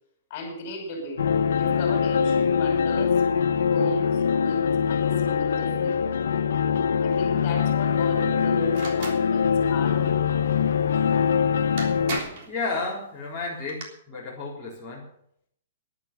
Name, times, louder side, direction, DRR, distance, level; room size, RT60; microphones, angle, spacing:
voice 1, 0.3-1.2 1.5-3.2 3.7-6.2 7.0-10.5, left 1 dB, 35° left, 3 dB, 5.7 m, -36 dB
sound 1, 1.2-12.2, left 7 dB, 85° left, 0.9 m, -23 dB
sound 2, 8.7-9.2 11.3-11.4 11.8-12.5 13.5-13.8, right 3 dB, 40° right, 3.5 m, -34 dB
voice 2, 12.1-15.1, left 3 dB, ahead, -7 dB, 4.0 m, -33 dB
12.0 x 11.5 x 7.3 m, 0.68 s
hypercardioid pair, 170°, 0 cm